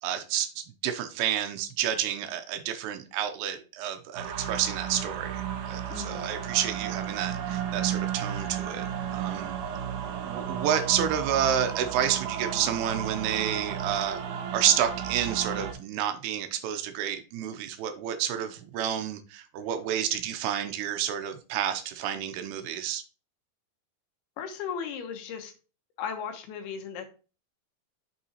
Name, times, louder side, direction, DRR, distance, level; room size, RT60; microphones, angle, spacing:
voice 1, 0.0-8.9 9.1-9.5 10.2-23.0, right 9 dB, 85° right, 7 dB, 2.7 m, -30 dB
sound 1, 4.1-15.7, right 9 dB, 70° right, 2.1 m, -33 dB
voice 2, 5.9-6.3 24.4-25.5 26.0-27.1, left 7 dB, 90° left, 6 dB, 3.0 m, -36 dB
7.0 x 5.6 x 2.8 m, 0.34 s
omnidirectional pair, 4.4 m